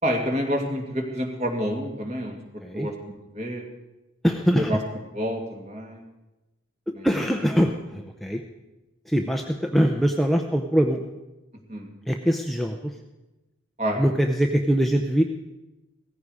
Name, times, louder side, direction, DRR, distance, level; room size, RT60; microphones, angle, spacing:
voice 1, 0.0-2.9 3.3-3.6 4.6-4.8 5.1-6.0 6.9-7.1 11.7-11.9 13.8-14.0, equal, 35° right, 2 dB, 2.4 m, -28 dB
voice 2, 4.2-4.8 7.0-8.4 9.1-11.2 12.1-13.0 14.0-15.2, equal, ahead, 3 dB, 0.6 m, -23 dB
17.5 x 15.0 x 4.9 m, 1.0 s
head